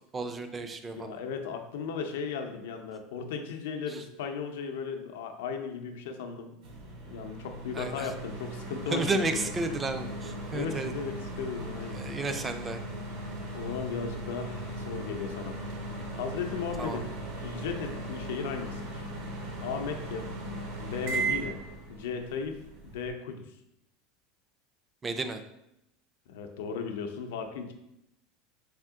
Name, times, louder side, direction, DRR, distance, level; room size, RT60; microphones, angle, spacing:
voice 1, 0.1-1.2 3.9-4.0 7.7-8.1 8.9-10.9 11.9-12.8 16.8-17.0 25.0-25.4, right 3 dB, 20° right, 8 dB, 0.3 m, -32 dB
voice 2, 0.9-6.6 7.1-9.5 10.5-12.0 13.5-15.6 16.1-17.1 17.4-19.1 19.6-20.3 20.8-21.6 21.9-22.6 22.8-23.4 26.3-27.7, left 6 dB, 90° left, 5 dB, 0.5 m, -36 dB
sound 1, 6.6-23.1, right 2 dB, 70° right, 0.9 m, -38 dB
3.5 x 2.7 x 3.6 m, 0.83 s
supercardioid pair, 135°, 0 cm